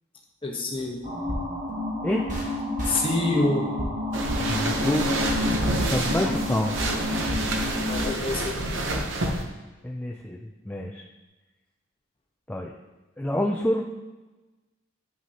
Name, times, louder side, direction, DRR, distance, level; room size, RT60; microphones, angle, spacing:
voice 1, 0.4-1.0 2.9-3.7 7.9-8.8, left 2 dB, 25° left, 0 dB, 1.1 m, -26 dB
sound 1, 1.0-8.1, left 1 dB, 40° right, 1.4 m, -29 dB
sound 2, 4.1-9.4, right 2 dB, 65° right, 0.8 m, -28 dB
voice 2, 4.5-5.1 5.9-6.7 9.8-11.0 12.5-12.7 13.2-13.8, left 1 dB, 10° left, 0 dB, 0.3 m, -27 dB
9.2 x 5.9 x 2.9 m, 1.1 s
head